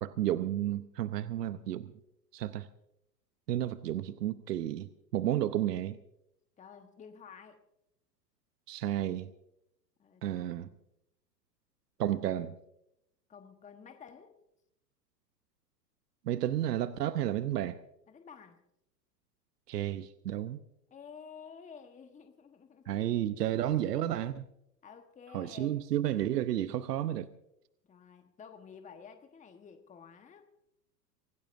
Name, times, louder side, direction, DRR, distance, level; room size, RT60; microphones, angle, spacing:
voice 1, 0.0-1.9 2.3-2.7 3.5-6.0 8.7-9.3 10.2-10.7 12.0-12.5 16.3-17.8 19.7-20.6 22.9-24.4 25.3-27.3, right 12 dB, 70° right, 0.8 m, -32 dB
voice 2, 6.6-7.6 10.0-10.6 13.3-14.4 18.1-18.6 20.9-23.3 23.6-23.8 24.8-25.8 27.9-30.5, left 6 dB, 15° left, 1.2 m, -52 dB
25.5 x 17.0 x 2.6 m
hypercardioid pair, 100°, 50 cm